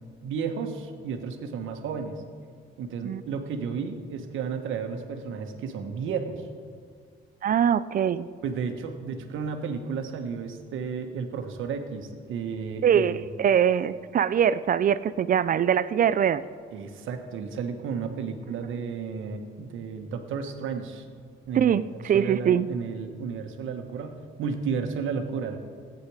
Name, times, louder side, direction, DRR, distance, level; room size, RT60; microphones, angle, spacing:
voice 1, 0.2-2.1 2.8-6.5 8.4-13.3 16.7-21.0 21.5-21.7 22.1-25.6, right 6 dB, 80° right, 6 dB, 1.2 m, -33 dB
voice 2, 7.4-8.3 12.8-16.4 21.5-22.7, right 8 dB, 45° right, 15 dB, 0.4 m, -23 dB
14.5 x 9.2 x 4.8 m, 2.1 s
cardioid pair, 90°, 20 cm